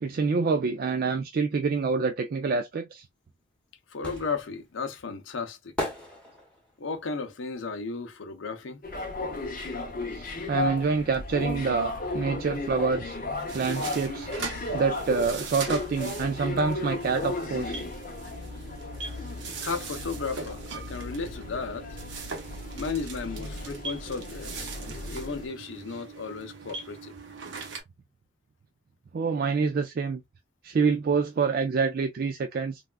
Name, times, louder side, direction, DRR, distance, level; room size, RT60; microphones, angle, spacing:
voice 1, 0.0-3.0 10.1-13.2 13.5-14.3 14.7-17.8 24.9-25.0 29.1-30.2 30.6-32.8, right 5 dB, 50° right, 0.3 m, -27 dB
sound 1, 3.2-9.0 9.3-10.9 11.1-11.2, left 1 dB, 5° left, 1.0 m, -39 dB
voice 2, 3.9-5.7 6.8-8.8 19.4-21.9 22.7-24.7 25.1-27.1, left 4 dB, 80° left, 0.6 m, -34 dB
sound 2, 8.8-25.5, left 2 dB, 45° left, 0.7 m, -35 dB
sound 3, 13.5-27.8, right 5 dB, 65° right, 0.7 m, -41 dB
3.4 x 2.3 x 2.2 m
head